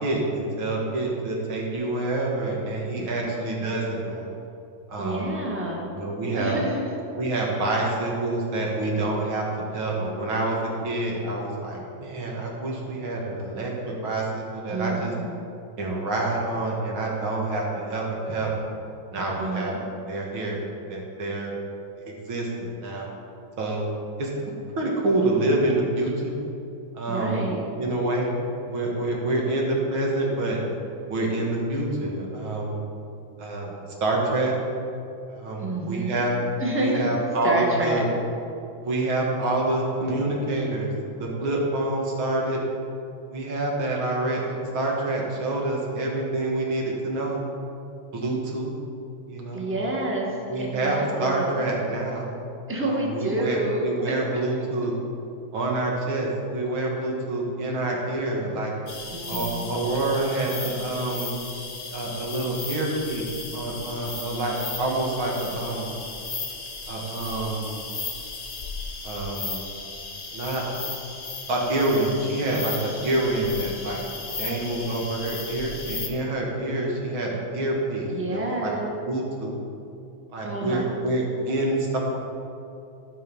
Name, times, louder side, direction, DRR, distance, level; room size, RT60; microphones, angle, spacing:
voice 1, 0.0-4.3 4.9-5.3 5.9-6.6 7.2-9.5 9.7-15.1 15.8-18.6 19.1-19.7 20.1-20.6 20.9-21.6 22.0-23.1 23.6-23.8 24.2-24.3 24.8-26.4 26.9-27.5 27.8-28.3 28.7-30.6 31.1-32.8 33.4-33.8 34.0-34.5 35.3-38.0 38.8-40.9 41.2-42.6 43.3-47.4 48.1-48.7 49.3-49.7 50.5-52.3 52.8-54.9 55.5-58.7 59.3-61.3 61.9-63.3 63.5-65.9 66.9-67.7 69.0-69.6 70.3-70.6 71.5-74.0 74.4-78.7 79.0-79.6 80.3-82.0, right 2 dB, 85° right, -2 dB, 2.7 m, -27 dB
voice 2, 5.0-6.0 6.3-6.8 14.7-15.3 19.4-19.8 27.1-27.6 35.6-36.2 36.6-37.1 37.4-38.0 49.5-51.7 52.7-54.1 59.1-59.7 78.1-79.0 80.4-80.9, right 1 dB, 5° right, -1 dB, 1.2 m, -28 dB
sound 1, 58.9-76.1, left 4 dB, 40° left, 1.4 m, -36 dB
16.5 x 5.6 x 5.4 m, 2.7 s
omnidirectional pair, 2.2 m